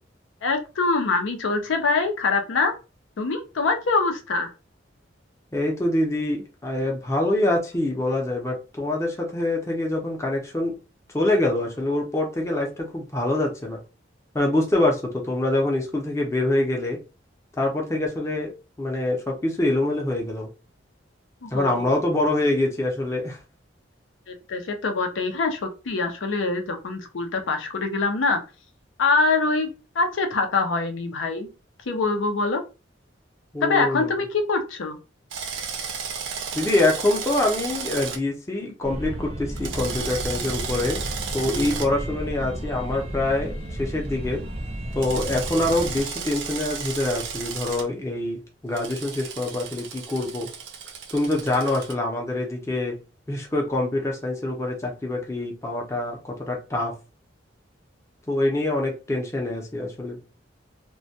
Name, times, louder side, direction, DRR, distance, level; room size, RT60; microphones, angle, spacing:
voice 1, 0.4-2.7 3.2-4.5 21.4-21.9 24.3-28.4 29.0-29.7 30.0-31.5 31.9-32.6 33.6-35.0, left 3 dB, 85° left, 5 dB, 0.5 m, -24 dB
voice 2, 5.5-10.7 11.1-13.8 14.3-17.0 17.6-18.5 18.8-20.5 21.5-23.4 33.5-34.2 36.5-41.0 41.3-44.4 44.9-50.5 51.1-53.0 53.3-56.9 58.3-60.2, left 1 dB, 15° left, 0 dB, 0.5 m, -25 dB
Drill, 35.3-38.2 39.6-41.9 45.0-47.8 48.8-51.9, right 6 dB, 75° right, 0.5 m, -33 dB
sound 1, 38.8-46.0, right 1 dB, 30° right, 0.5 m, -33 dB
2.2 x 2.1 x 2.7 m, 0.31 s
head